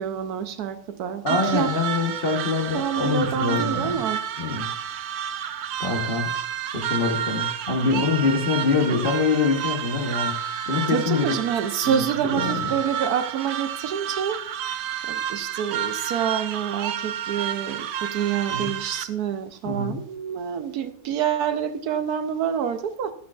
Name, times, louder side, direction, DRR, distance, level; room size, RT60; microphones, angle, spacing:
voice 1, 0.0-1.7 2.7-4.2 10.9-14.4 15.0-23.1, right 8 dB, 80° right, 1.3 m, -27 dB
voice 2, 1.2-3.9 4.4-4.7 5.8-6.3 6.7-10.3 10.7-11.4 11.8-12.0 12.3-12.7 18.5-18.7 19.6-20.0, left 4 dB, 40° left, 1.2 m, -24 dB
sound 1, 1.3-19.0, right 9 dB, 65° right, 0.6 m, -30 dB
12.0 x 8.5 x 2.4 m
omnidirectional pair, 1.6 m